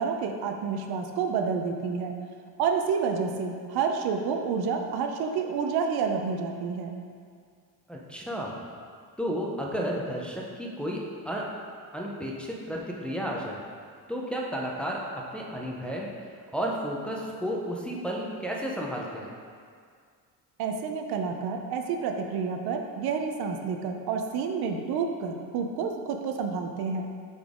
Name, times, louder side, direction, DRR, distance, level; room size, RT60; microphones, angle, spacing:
voice 1, 0.0-2.2 2.6-6.9 20.6-27.1, right 5 dB, 75° right, 4 dB, 0.7 m, -29 dB
voice 2, 7.9-8.5 9.2-11.5 11.9-13.6 14.1-16.1 16.5-19.3, equal, 5° left, -3 dB, 0.6 m, -32 dB
8.4 x 4.1 x 3.6 m, 2.1 s
cardioid pair, 135°, 38 cm